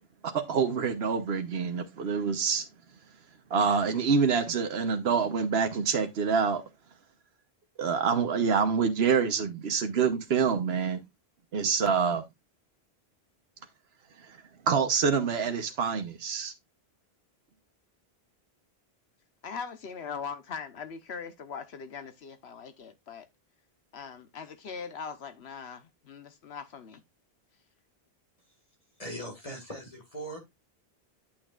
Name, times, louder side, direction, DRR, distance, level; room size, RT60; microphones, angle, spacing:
voice 1, 0.2-2.7 3.5-6.6 7.8-11.0 11.5-12.2 14.3-14.4 14.7-16.5, right 6 dB, 85° right, 1.2 m, -26 dB
voice 2, 19.4-23.3 23.9-27.0, left 6 dB, 90° left, 1.3 m, -40 dB
voice 3, 29.0-30.4, right 1 dB, 35° left, 2.1 m, -39 dB
8.8 x 8.5 x 2.4 m
omnidirectional pair, 1.0 m